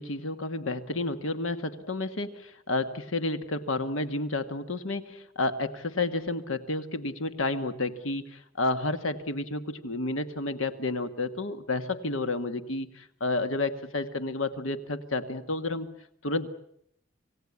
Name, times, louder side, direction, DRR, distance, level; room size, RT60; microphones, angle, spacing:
voice 1, 0.0-16.5, left 2 dB, 90° left, 10 dB, 1.7 m, -31 dB
27.0 x 17.5 x 9.6 m, 0.73 s
head